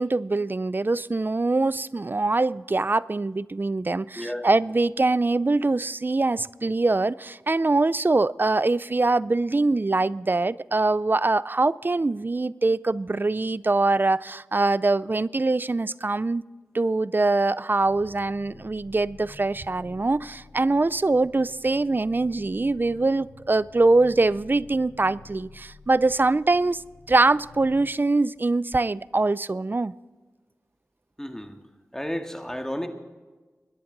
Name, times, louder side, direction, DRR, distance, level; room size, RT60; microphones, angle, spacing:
voice 1, 0.0-16.4 16.7-26.8 27.1-29.9, right 3 dB, 35° right, 0.4 m, -23 dB
voice 2, 4.1-4.5 31.2-31.6 31.9-32.9, equal, 10° left, 1.9 m, -32 dB
sound 1, 17.8-27.8, left 3 dB, 90° left, 2.7 m, -49 dB
23.0 x 10.5 x 4.0 m
cardioid pair, 40°, 6 cm